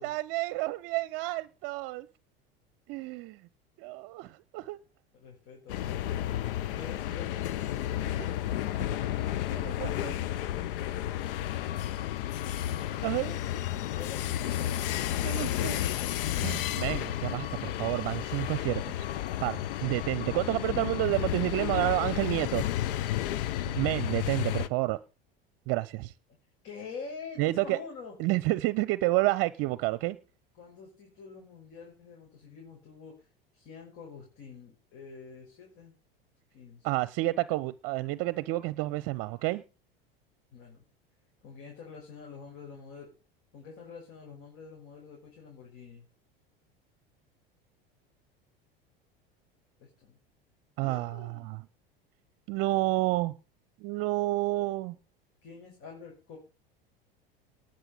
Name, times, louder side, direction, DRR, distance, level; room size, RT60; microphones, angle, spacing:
voice 1, 0.0-2.1 2.9-3.4 3.8-4.8 8.9-10.3 13.0-13.4 15.2-15.8 16.4-19.1 19.4-22.7 23.7-25.0 25.7-26.1 27.4-27.8 28.2-30.2 36.8-39.6 50.8-51.6 52.5-53.3 53.8-55.0, right 19 dB, 50° right, 0.7 m, -30 dB
voice 2, 5.1-6.0 6.7-8.4 13.0-13.6 13.9-14.7 26.6-28.2 30.6-33.3 33.5-35.9 36.5-37.0 40.5-40.8 41.4-43.1 43.5-46.1 49.8-50.2 50.8-51.5 55.4-56.4, left 5 dB, 50° left, 5.6 m, -46 dB
sound 1, 5.7-24.7, left 12 dB, 65° left, 0.9 m, -32 dB
19.5 x 6.7 x 5.6 m
hypercardioid pair, 80°, 30 cm